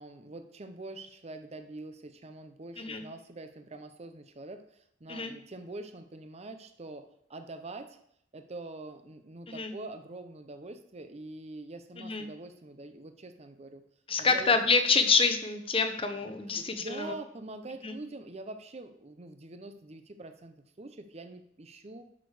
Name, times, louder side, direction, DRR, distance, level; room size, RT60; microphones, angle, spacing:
voice 1, 0.0-8.0 8.3-13.8 14.2-14.6 16.0-16.2 16.5-22.1, right 2 dB, 35° right, 8 dB, 0.7 m, -44 dB
voice 2, 12.0-12.3 14.1-17.1 17.8-17.9, left 4 dB, 30° left, 8 dB, 1.0 m, -27 dB
11.0 x 6.3 x 4.9 m, 0.71 s
head